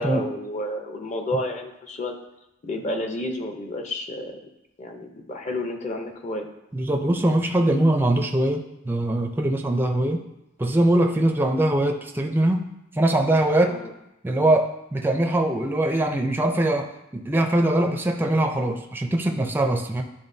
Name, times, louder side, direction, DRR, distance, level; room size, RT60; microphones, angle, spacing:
voice 1, 0.0-2.1 2.6-4.3 4.8-6.5 13.7-13.9, left 1 dB, 35° left, 4 dB, 0.7 m, -30 dB
voice 2, 6.7-10.3 10.6-13.8 14.2-20.0, right 1 dB, 10° right, 3 dB, 0.4 m, -22 dB
10.5 x 3.6 x 2.7 m, 0.91 s
head